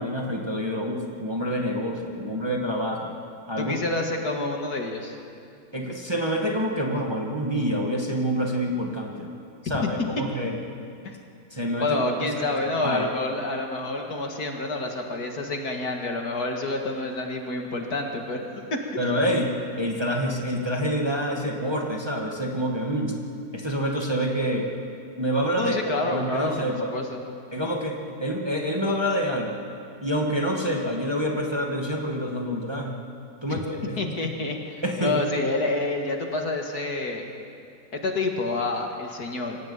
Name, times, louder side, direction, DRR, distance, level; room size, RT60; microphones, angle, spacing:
voice 1, 0.0-3.1 3.5-3.7 5.7-9.3 9.6-10.5 11.5-12.5 12.8-13.1 19.0-23.2 23.5-24.7 25.2-25.8 26.1-26.9 27.5-29.6 30.0-33.0 33.4-34.1 34.8-35.2, equal, 15° right, 0 dB, 2.0 m, -27 dB
voice 2, 3.6-5.2 9.8-10.2 11.0-11.2 11.8-18.8 25.6-27.2 33.5-33.6 34.0-37.3 37.9-39.6, left 2 dB, 55° left, 2 dB, 2.4 m, -28 dB
25.0 x 15.0 x 8.9 m, 2.4 s
omnidirectional pair, 2.0 m